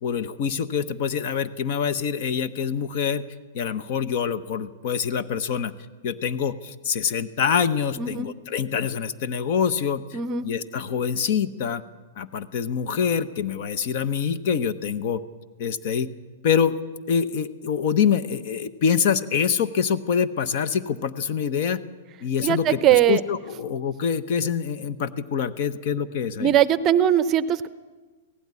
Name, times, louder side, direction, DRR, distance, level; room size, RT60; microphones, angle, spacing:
voice 1, 0.0-3.2 3.5-5.7 6.0-11.8 12.2-15.2 15.6-16.1 16.4-16.8 17.1-21.8 22.2-22.8 23.1-26.6, left 7 dB, 50° left, 13 dB, 1.0 m, -25 dB
voice 2, 8.0-8.3 10.1-10.5 22.4-23.2 26.4-27.7, right 10 dB, 25° right, 15 dB, 0.7 m, -20 dB
16.5 x 16.5 x 9.7 m, 1.3 s
hypercardioid pair, 150°, 0 cm